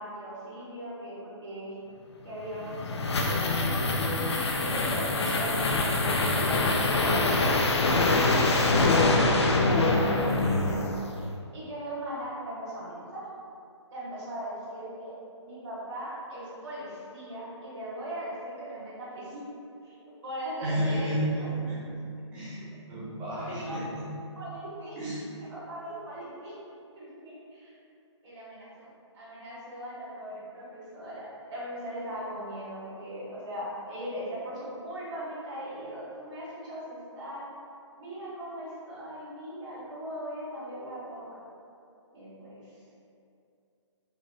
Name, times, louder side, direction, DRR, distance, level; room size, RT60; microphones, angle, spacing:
voice 1, 0.0-1.7 2.2-3.9 4.5-9.3 9.6-10.9 11.5-13.2 13.9-15.1 15.4-19.4 19.8-19.9 20.2-21.5 23.5-23.8 24.4-24.9 25.5-26.5 26.9-27.7 28.2-28.9 29.1-37.4 38.0-41.4 42.1-42.6, equal, 70° right, -11 dB, 1.4 m, -39 dB
sound 1, 2.4-11.3, left 2 dB, 60° left, 0.5 m, -25 dB
voice 2, 20.6-22.0 22.3-24.3 25.0-25.2, right 1 dB, 5° right, -12 dB, 0.5 m, -32 dB
5.0 x 2.8 x 2.3 m, 2.6 s
hypercardioid pair, 170°, 16 cm